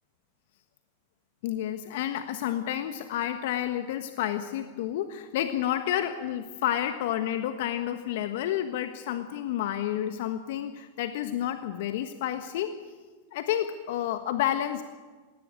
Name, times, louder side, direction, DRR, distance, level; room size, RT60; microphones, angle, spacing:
voice 1, 1.4-12.7 13.3-14.8, left 11 dB, 65° left, 8 dB, 1.4 m, -30 dB
19.0 x 16.5 x 9.0 m, 1.4 s
hypercardioid pair, 100°, 0 cm